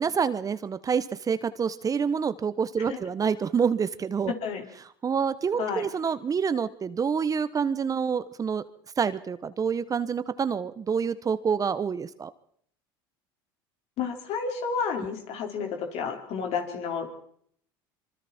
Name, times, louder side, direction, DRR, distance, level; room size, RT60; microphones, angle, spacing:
voice 1, 0.0-4.3 5.0-8.6 9.0-12.3, right 6 dB, 30° right, 14 dB, 1.2 m, -27 dB
voice 2, 4.3-4.7 5.6-5.9 14.0-17.2, left 5 dB, 60° left, 3 dB, 5.0 m, -31 dB
26.0 x 24.0 x 4.5 m, 0.65 s
supercardioid pair, 90°, 12 cm